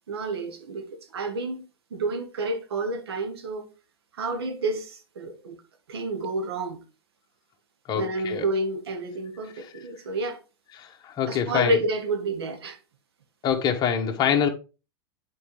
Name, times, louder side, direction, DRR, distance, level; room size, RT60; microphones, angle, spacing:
voice 1, 0.1-1.6 1.9-3.7 4.1-5.6 5.9-6.8 7.9-10.4 11.3-12.8, right 2 dB, 90° right, 1.5 m, -29 dB
voice 2, 7.9-8.4 10.8-11.8 13.4-14.5, left 8 dB, 30° left, 1.3 m, -25 dB
8.4 x 4.6 x 3.3 m
hypercardioid pair, 120°, 13 cm